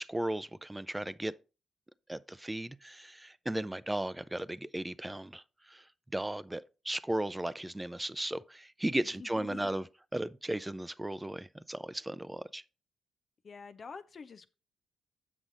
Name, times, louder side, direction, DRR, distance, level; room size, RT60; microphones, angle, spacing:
voice 1, 0.0-1.3 2.1-5.9 6.1-9.8 10.1-12.6, right 1 dB, 15° right, 0.6 m, -36 dB
voice 2, 9.0-9.7 13.4-14.5, left 5 dB, 50° left, 0.6 m, -47 dB
8.1 x 6.0 x 3.9 m
hypercardioid pair, 40°, 0 cm